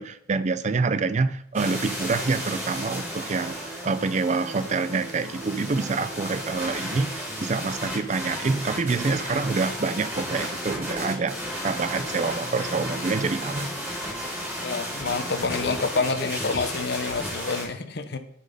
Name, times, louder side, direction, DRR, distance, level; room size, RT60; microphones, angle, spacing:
voice 1, 0.0-3.6 3.8-11.4 11.6-13.8, right 4 dB, 35° right, 12 dB, 0.4 m, -26 dB
sound 1, 1.5-17.6, equal, 10° right, 3.3 m, -34 dB
sound 2, 2.2-15.4, right 1 dB, 5° left, 1.2 m, -42 dB
voice 2, 14.6-18.2, left 4 dB, 55° left, 9 dB, 0.8 m, -28 dB
9.8 x 4.1 x 5.3 m, 0.70 s
head